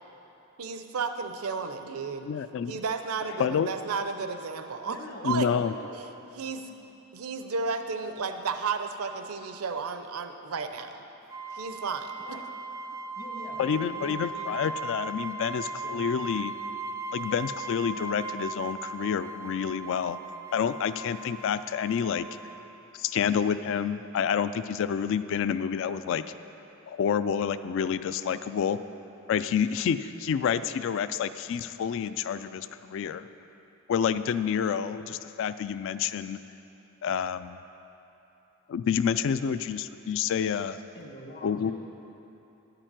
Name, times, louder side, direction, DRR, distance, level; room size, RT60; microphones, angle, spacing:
voice 1, 0.6-2.3 2.7-5.0 5.2-5.5 5.9-6.0 6.4-6.7 7.1-11.0 11.5-12.4, right 5 dB, 80° right, 8 dB, 0.6 m, -33 dB
voice 2, 2.3-2.8 3.4-3.7 5.2-5.7 13.6-16.5 17.1-20.2 20.5-22.3 22.9-26.2 26.9-28.8 29.3-33.3 33.9-36.4 37.0-37.6 38.7-40.8 41.4-41.7, left 7 dB, 60° left, 13 dB, 0.3 m, -28 dB
voice 3, 3.2-3.5 4.8-5.9 12.2-12.4 13.2-14.5 15.7-16.1 40.9-41.7, equal, 45° left, 1 dB, 1.2 m, -44 dB
sound 1, 11.3-22.7, right 3 dB, 15° right, 0.4 m, -38 dB
10.5 x 6.7 x 7.4 m, 3.0 s
head